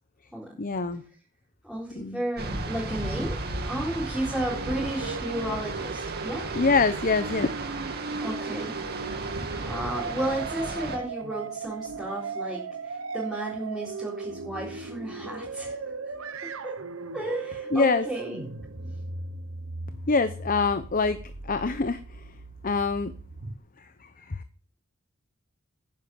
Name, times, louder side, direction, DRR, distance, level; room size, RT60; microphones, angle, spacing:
voice 1, 0.6-1.0 1.9-2.2 6.5-7.5 17.7-18.1 20.1-21.2 21.4-22.2 22.6-23.1 23.8-24.4, left 4 dB, 40° left, 11 dB, 0.8 m, -25 dB
voice 2, 1.6-3.4 3.7-6.5 8.2-8.7 9.7-15.8 16.6-16.7 17.1-18.4 18.8-18.9, right 1 dB, ahead, -6 dB, 4.1 m, -33 dB
sound 1, 2.4-11.0, right 2 dB, 50° right, 2.3 m, -34 dB
sound 2, 4.5-23.5, right 4 dB, 65° right, 1.1 m, -37 dB
11.5 x 9.9 x 7.1 m, 0.42 s
head